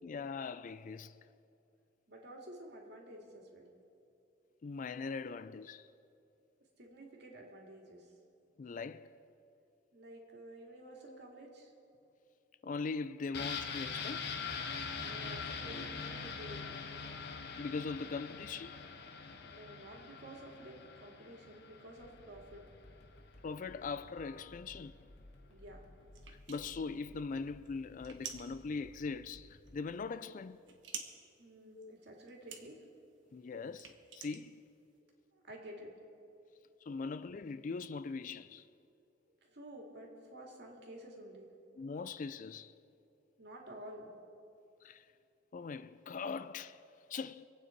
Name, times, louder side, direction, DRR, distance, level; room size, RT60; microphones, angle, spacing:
voice 1, 0.0-1.2 4.6-5.9 8.6-9.1 11.1-11.2 12.6-14.2 17.0-18.8 23.4-25.0 26.3-30.6 31.7-31.9 33.3-34.6 36.8-38.7 41.8-42.7 44.8-45.1 45.5-46.8 47.1-47.5, left 4 dB, 45° left, 0.4 m, -41 dB
voice 2, 2.1-3.8 6.8-8.1 9.9-11.7 15.0-16.9 19.4-22.7 25.5-25.9 31.4-32.8 35.3-35.9 39.4-41.5 43.4-44.1, right 1 dB, 60° right, 2.4 m, -51 dB
sound 1, 13.3-23.0 23.3-23.4, left 5 dB, 60° left, 1.1 m, -43 dB
sound 2, 22.0-29.8, left 1 dB, 80° left, 1.9 m, -58 dB
sound 3, 26.1-35.0, right 7 dB, 75° right, 1.3 m, -51 dB
24.5 x 8.8 x 4.6 m
head